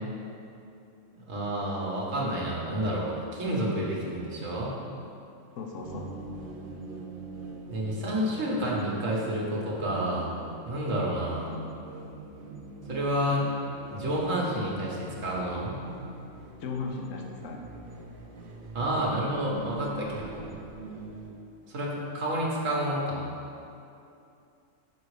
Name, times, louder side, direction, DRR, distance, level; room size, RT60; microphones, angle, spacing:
voice 1, 1.3-4.8 7.7-10.3 10.7-11.6 12.9-13.5 13.9-15.8 18.7-20.5 21.7-23.3, right 1 dB, 80° right, -4 dB, 1.6 m, -29 dB
voice 2, 5.6-6.1 16.6-17.6 19.5-19.8, left 4 dB, 80° left, 1 dB, 1.1 m, -36 dB
sound 1, 5.8-21.3, right 2 dB, 50° right, 0.8 m, -43 dB
6.2 x 5.7 x 4.8 m, 2.6 s
omnidirectional pair, 1.3 m